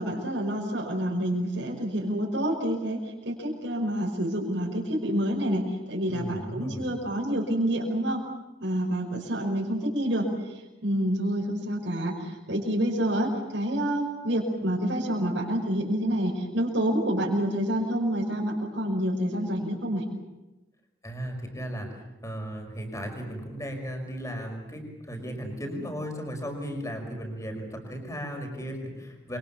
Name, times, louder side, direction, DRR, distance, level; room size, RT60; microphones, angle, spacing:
voice 1, 0.0-3.0 3.2-5.6 5.9-8.2 8.6-10.3 10.8-20.1, right 1 dB, 75° right, -3 dB, 5.6 m, -28 dB
voice 2, 6.1-6.9 21.0-29.4, equal, 15° left, 3 dB, 5.6 m, -36 dB
28.0 x 24.5 x 7.2 m, 1.0 s
head